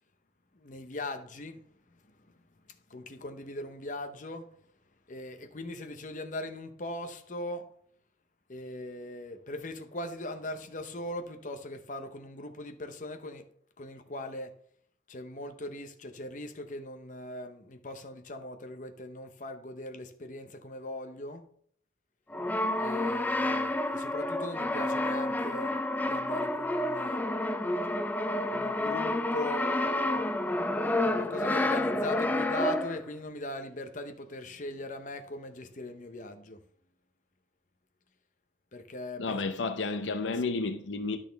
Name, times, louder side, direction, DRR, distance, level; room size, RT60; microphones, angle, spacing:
voice 1, 0.5-1.6 2.1-2.2 2.9-4.4 5.1-7.6 8.5-13.4 13.8-14.5 15.1-21.4 22.8-27.2 28.5-30.3 31.0-36.6 38.7-39.4, left 1 dB, 45° left, 0.8 m, -40 dB
Brass instrument, 22.3-33.1, left 1 dB, 10° left, 0.3 m, -29 dB
voice 2, 39.2-41.2, left 3 dB, 85° left, 0.6 m, -31 dB
10.5 x 6.1 x 3.4 m
head